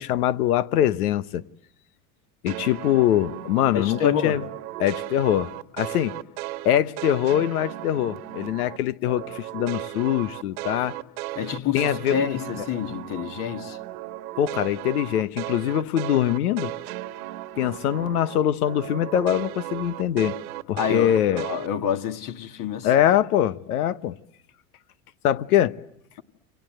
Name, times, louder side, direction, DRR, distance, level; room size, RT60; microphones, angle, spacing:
voice 1, 0.0-1.4 2.4-4.5 4.8-6.2 6.6-11.0 11.7-12.7 14.4-16.7 17.6-20.4 20.7-21.4 22.8-24.2 25.2-25.7, left 11 dB, 85° left, 1.1 m, -23 dB
sound 1, 2.5-8.8 9.1-18.4 18.7-21.7, right 16 dB, 75° right, 1.6 m, -36 dB
voice 2, 3.7-4.4 11.4-13.8 20.7-22.9, left 8 dB, 50° left, 2.2 m, -28 dB
29.0 x 25.5 x 7.9 m
hypercardioid pair, 95°, 43 cm